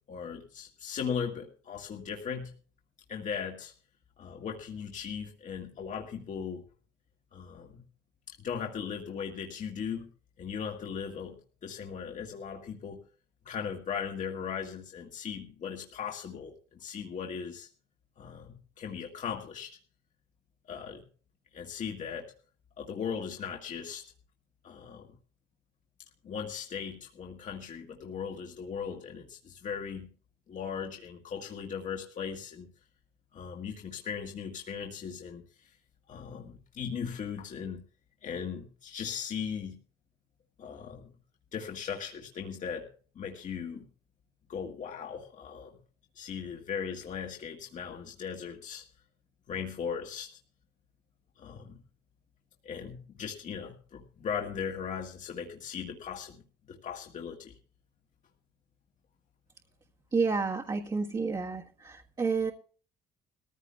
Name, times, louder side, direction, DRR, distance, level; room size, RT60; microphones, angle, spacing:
voice 1, 0.1-2.5 3.1-3.7 4.2-6.6 7.3-7.8 8.3-10.1 10.4-13.0 13.4-17.7 18.2-19.8 20.7-21.0 21.5-22.3 22.8-24.0 24.6-25.2 26.2-30.1 30.5-32.7 33.3-35.7 36.1-37.8 38.2-39.8 40.6-41.1 41.5-42.9 43.2-43.9 44.5-45.8 46.2-48.8 49.5-50.3 51.4-51.8 52.6-56.4 56.7-57.6, left 7 dB, 50° left, 2 dB, 2.0 m, -38 dB
voice 2, 60.1-62.5, right 4 dB, 25° right, 0 dB, 1.5 m, -30 dB
21.0 x 15.0 x 2.3 m, 0.42 s
cardioid pair, 110°, 17 cm